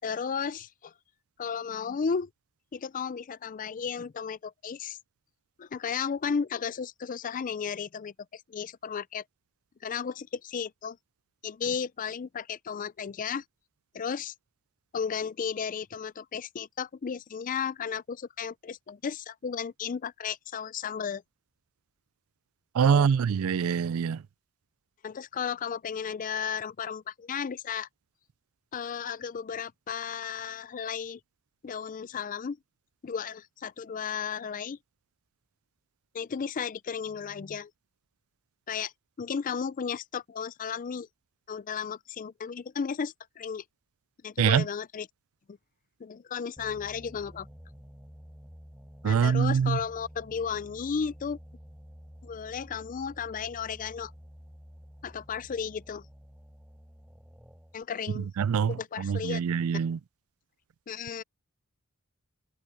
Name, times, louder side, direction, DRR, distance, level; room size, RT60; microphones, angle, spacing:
voice 1, 0.0-0.9 1.4-2.3 2.7-5.0 5.6-9.2 9.8-11.0 11.4-13.4 13.9-14.3 14.9-21.2 22.8-23.1 25.0-27.9 28.7-31.2 31.6-32.6 33.0-34.8 36.1-37.7 38.7-38.9 39.2-41.1 41.5-43.6 44.2-45.1 45.5-45.6 46.0-47.5 49.0-51.4 52.2-54.1 55.0-56.0 57.7-58.3 58.7-59.4 60.9-61.2, left 6 dB, 35° left, 0.4 m, -34 dB
voice 2, 22.7-24.2 44.4-44.6 49.0-49.8 58.2-60.0, right 7 dB, 70° right, 0.4 m, -25 dB
sound 1, 46.6-57.8, equal, 5° right, 8.0 m, -50 dB
head